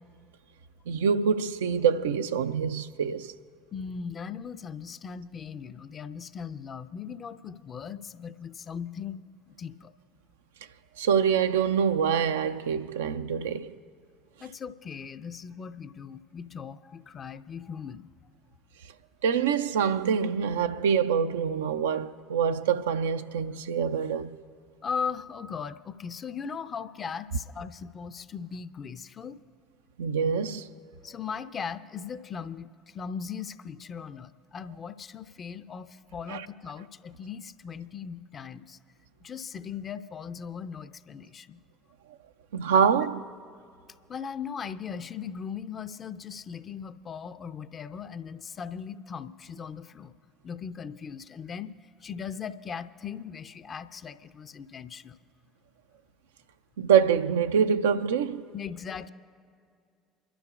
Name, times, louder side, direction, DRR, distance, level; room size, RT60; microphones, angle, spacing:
voice 1, 0.9-3.3 11.0-13.8 19.2-24.4 30.0-30.7 36.3-36.5 42.5-43.3 56.8-58.5, right 7 dB, 75° right, 0.4 m, -25 dB
voice 2, 3.7-9.9 14.4-18.1 24.8-29.4 31.0-38.8 39.2-41.6 44.1-50.1 50.4-51.7 52.0-55.2 58.5-59.1, left 6 dB, 35° left, 0.6 m, -38 dB
29.5 x 12.5 x 2.4 m
figure-of-eight pair, 60°, 0 cm